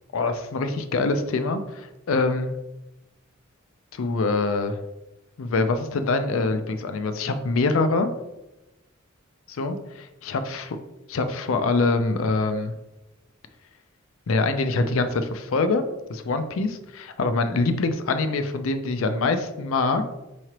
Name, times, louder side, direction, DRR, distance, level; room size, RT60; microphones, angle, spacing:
voice 1, 0.1-2.5 3.9-4.8 5.4-8.1 9.5-10.8 11.1-12.7 14.3-15.8 16.1-20.0, left 3 dB, 70° left, 9 dB, 0.4 m, -24 dB
4.8 x 3.1 x 2.9 m, 0.96 s
head